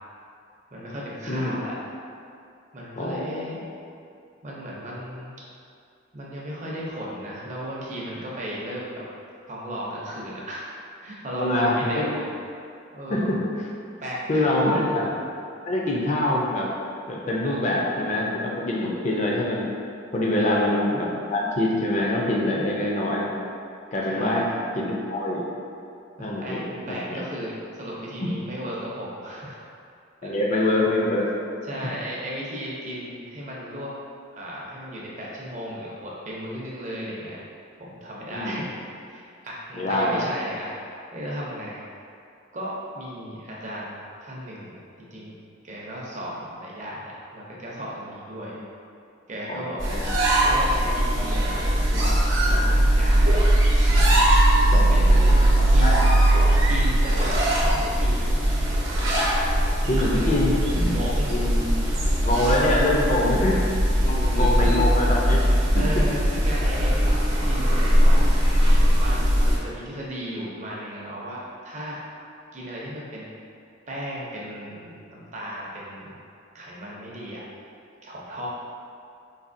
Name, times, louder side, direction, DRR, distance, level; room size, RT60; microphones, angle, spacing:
voice 1, 0.7-1.7 2.7-3.6 4.4-5.4 6.1-9.0 9.5-10.7 11.0-12.3 12.9-13.4 14.0-15.1 17.4-17.6 20.4-20.8 24.1-24.5 26.2-29.6 30.2-30.7 31.6-33.9 34.4-37.4 37.8-40.7 41.1-41.8 42.5-45.4 45.6-48.6 49.3-49.8 50.4-52.2 52.5-53.4 54.9-56.1 56.7-58.3 60.0-60.1 60.8-61.3 63.1-63.5 64.0-64.8 65.8-68.3 68.9-72.0 72.5-73.3 73.9-76.2 76.5-77.4 78.0-78.5, equal, 40° right, -5 dB, 0.6 m, -35 dB
voice 2, 3.0-3.5 11.4-12.2 13.1-13.4 14.3-15.0 15.7-16.7 17.1-19.7 20.1-23.3 23.9-24.5 24.7-25.4 26.2-26.6 26.9-27.2 30.2-31.3 38.3-38.6 39.7-40.3 49.5-50.1 54.7-56.0 59.9-60.6 61.3-61.7 62.2-63.6 64.0-65.4 65.7-66.0, left 1 dB, 35° left, -2 dB, 0.5 m, -24 dB
sound 1, 49.8-69.6, right 1 dB, 75° right, 0.8 m, -20 dB
4.1 x 2.8 x 2.6 m, 2.5 s
head